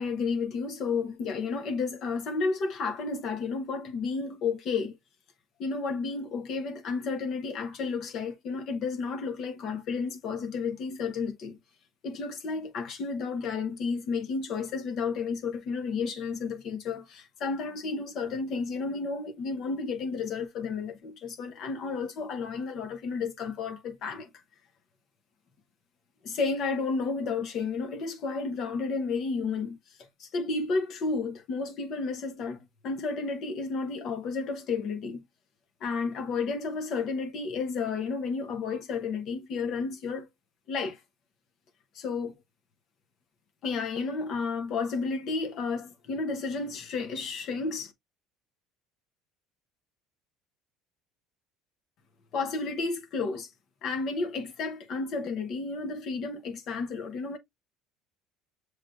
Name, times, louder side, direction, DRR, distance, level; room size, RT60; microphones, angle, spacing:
voice 1, 0.0-5.0 5.6-11.6 12.0-24.3 26.2-35.2 35.8-40.3 40.7-41.0 41.9-42.4 43.6-47.9 52.3-53.5 53.8-57.4, left 4 dB, 50° left, 0.8 m, -32 dB
6.2 x 3.2 x 2.4 m
cardioid pair, 120°, 0 cm